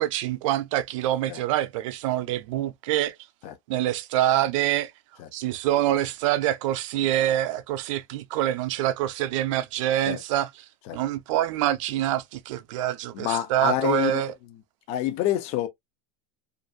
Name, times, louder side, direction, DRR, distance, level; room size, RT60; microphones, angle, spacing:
voice 1, 0.0-3.2 3.7-4.9 5.3-10.6 10.9-14.3, right 13 dB, 65° right, 0.4 m, -25 dB
voice 2, 13.1-14.2 14.9-15.7, left 12 dB, 35° left, 0.4 m, -27 dB
2.5 x 2.3 x 2.5 m
supercardioid pair, 155°, 18 cm